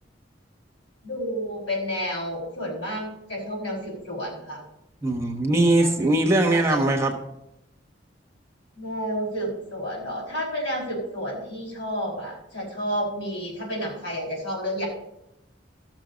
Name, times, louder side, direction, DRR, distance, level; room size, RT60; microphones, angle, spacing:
voice 1, 1.0-4.6 5.5-6.0 6.3-6.8 8.7-14.9, equal, 70° left, -2 dB, 5.2 m, -31 dB
voice 2, 5.0-7.2, right 2 dB, 15° right, 1 dB, 1.2 m, -21 dB
15.5 x 6.6 x 5.2 m, 0.86 s
head